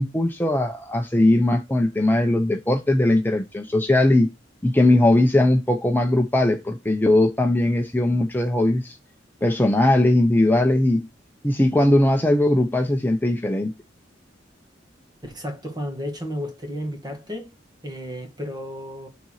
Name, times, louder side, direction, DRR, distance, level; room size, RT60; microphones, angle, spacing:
voice 1, 0.0-4.3 4.6-9.0 9.4-11.1 11.4-13.7, left 1 dB, 10° left, 0.7 m, -19 dB
voice 2, 15.2-17.5 17.8-19.1, equal, 20° right, 1.9 m, -32 dB
6.8 x 4.0 x 4.8 m
head